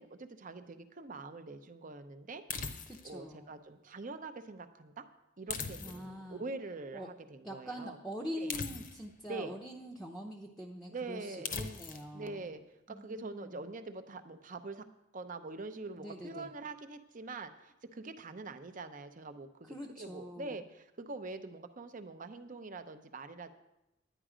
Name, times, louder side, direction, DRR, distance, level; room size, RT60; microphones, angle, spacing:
voice 1, 0.0-2.7 3.0-5.0 5.4-8.0 8.4-8.5 9.3-9.6 10.9-11.6 12.1-12.6 12.9-14.9 15.1-23.5, right 3 dB, 40° right, 9 dB, 0.7 m, -44 dB
sound 1, 2.5-3.2 5.5-6.2 8.5-9.2 11.4-12.1, left 5 dB, 45° left, 0.8 m, -40 dB
voice 2, 2.9-3.6 5.8-6.4 6.9-7.1 7.4-12.5 12.9-13.6 15.9-16.5 19.6-20.6, equal, 5° left, 0 dB, 0.7 m, -44 dB
10.0 x 10.0 x 5.0 m, 0.90 s
head